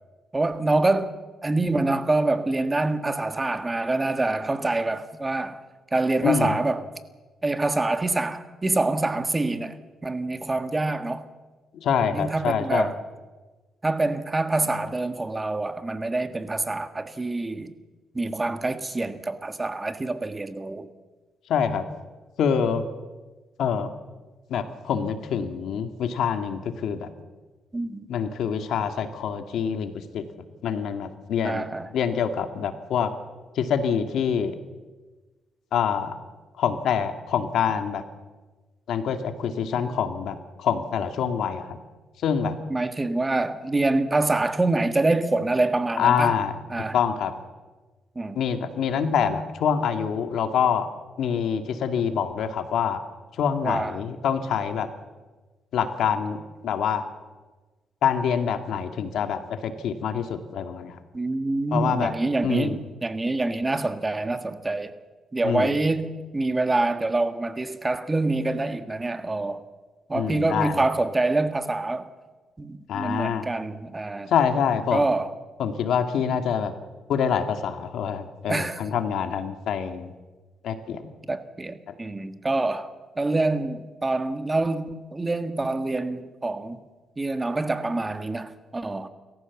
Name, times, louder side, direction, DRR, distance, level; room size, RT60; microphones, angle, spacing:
voice 1, 0.3-1.1 1.4-5.6 5.9-6.8 7.4-11.2 12.1-13.0 13.8-17.8 18.1-20.9 27.7-28.1 31.4-31.9 42.7-46.4 46.7-47.0 48.1-48.4 53.6-54.0 61.1-64.9 65.3-69.6 70.1-72.1 72.6-74.3 74.9-75.3 78.5-78.8 81.3-82.9 83.2-86.8 87.2-89.1, right 2 dB, 20° right, 1.6 m, -26 dB
voice 2, 6.2-6.5 11.7-12.9 21.5-21.8 22.4-22.9 23.6-23.9 24.5-27.1 28.1-30.2 30.6-31.7 31.9-33.1 33.6-34.6 35.7-36.1 36.6-38.0 38.9-41.8 42.2-42.5 46.0-46.6 46.9-47.3 48.4-50.9 51.2-53.0 53.4-54.9 55.7-57.0 58.0-61.0 61.7-62.1 62.4-62.8 65.4-65.8 70.1-70.8 72.9-73.5 74.3-75.1 75.6-76.7 77.1-80.1 80.6-81.1, left 7 dB, 75° left, 2.0 m, -25 dB
28.5 x 14.5 x 7.2 m
cardioid pair, 90°, 0 cm